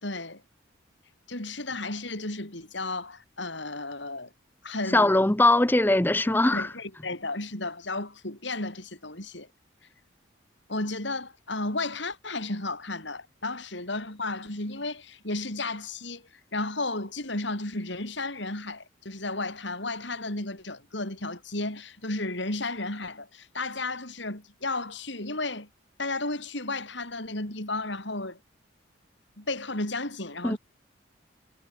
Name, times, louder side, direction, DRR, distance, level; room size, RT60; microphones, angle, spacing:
voice 1, 0.0-0.4 1.3-4.3 4.6-5.2 6.3-9.5 10.7-25.7 26.0-28.4 29.4-30.6, left 2 dB, 65° left, 5.2 m, -33 dB
voice 2, 4.9-6.7 30.4-30.6, left 2 dB, 10° left, 0.6 m, -21 dB
head